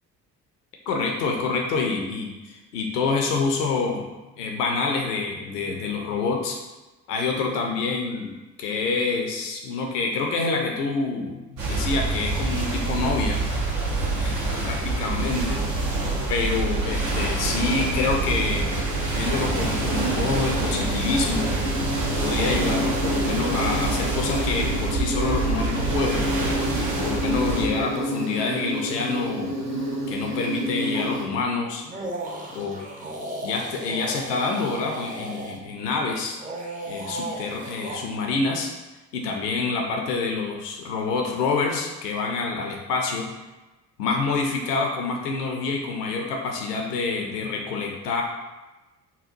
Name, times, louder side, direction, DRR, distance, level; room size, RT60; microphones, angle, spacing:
voice 1, 0.9-4.1 4.4-6.6 7.1-13.4 14.2-16.0 16.3-18.7 19.2-21.5 22.2-26.5 27.0-29.6 30.1-31.8 32.5-32.8 33.4-36.4 36.9-38.7 39.1-43.3 44.0-48.2, left 4 dB, 80° left, 1 dB, 0.6 m, -27 dB
sound 1, 11.6-27.7, right 2 dB, 75° right, 0.8 m, -26 dB
Insect, 14.6-31.2, equal, 45° right, 1.2 m, -31 dB
sound 2, 30.9-31.1 31.8-35.6 36.3-38.1, right 2 dB, 20° right, 0.5 m, -35 dB
4.2 x 2.2 x 2.5 m, 1.1 s
figure-of-eight pair, 50°, 48 cm